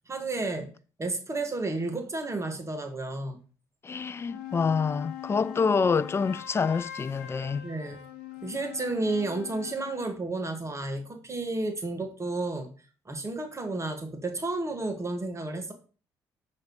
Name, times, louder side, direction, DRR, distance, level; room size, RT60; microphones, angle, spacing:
voice 1, 0.1-0.7 1.0-3.4 7.6-8.0 8.4-12.7 13.0-15.7, right 2 dB, 30° right, 1.3 m, -32 dB
voice 2, 3.8-7.7, left 5 dB, 25° left, 0.3 m, -27 dB
sound 1, 4.0-10.2, left 12 dB, 75° left, 0.8 m, -42 dB
6.4 x 3.3 x 4.6 m
hypercardioid pair, 50°, 10 cm